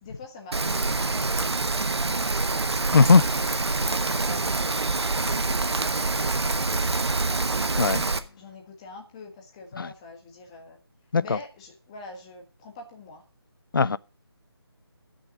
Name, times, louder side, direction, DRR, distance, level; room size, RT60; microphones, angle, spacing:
voice 1, 0.0-2.6 3.3-7.5 8.4-10.8 11.2-13.2, left 3 dB, 15° left, 1.4 m, -45 dB
Rain, 0.5-8.2, right 3 dB, 85° right, 1.2 m, -26 dB
voice 2, 2.9-3.3 7.8-8.0 9.8-9.9 11.1-11.4 13.7-14.0, left 4 dB, 55° left, 0.5 m, -19 dB
13.0 x 6.3 x 6.4 m
figure-of-eight pair, 170°, 14 cm